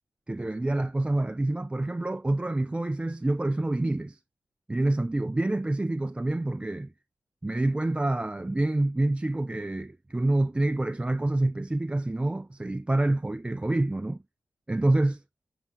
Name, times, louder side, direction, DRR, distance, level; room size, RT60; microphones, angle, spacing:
voice 1, 0.3-4.2 4.7-6.9 7.4-14.2 14.7-15.2, right 2 dB, 15° right, 0.3 m, -27 dB
7.3 x 5.5 x 2.5 m
supercardioid pair, 40°, 7 cm